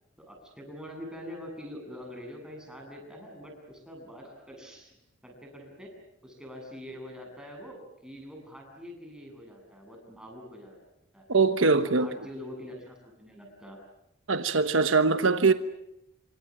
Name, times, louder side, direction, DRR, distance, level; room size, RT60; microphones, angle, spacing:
voice 1, 0.2-5.9 6.2-10.8 11.1-11.3 11.7-13.8, equal, 5° right, 8.0 m, -44 dB
voice 2, 11.3-12.1 14.3-15.5, right 4 dB, 75° right, 1.1 m, -22 dB
27.5 x 25.5 x 7.5 m
head